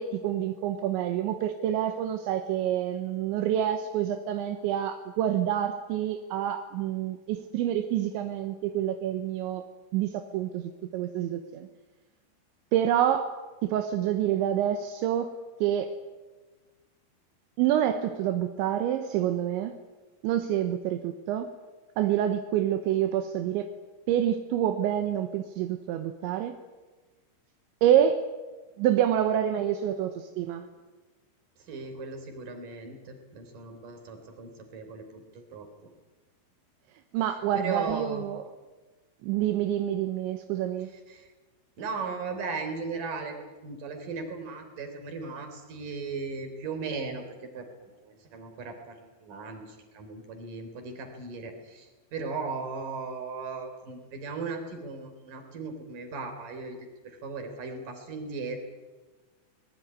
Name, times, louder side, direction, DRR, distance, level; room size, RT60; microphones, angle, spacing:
voice 1, 0.0-9.6 9.9-11.7 12.7-13.4 13.6-15.3 15.6-15.9 17.6-19.8 20.2-21.5 22.0-23.7 24.1-26.6 27.8-28.3 28.8-30.7 37.1-38.4 39.2-40.9, right 10 dB, 80° right, 7 dB, 3.3 m, -27 dB
voice 2, 31.7-35.7 37.5-38.2 41.1-41.2 41.8-43.4 43.6-47.2 47.5-56.8 57.0-58.6, right 4 dB, 45° right, 6 dB, 4.7 m, -37 dB
23.0 x 20.5 x 9.7 m, 1.3 s
omnidirectional pair, 5.5 m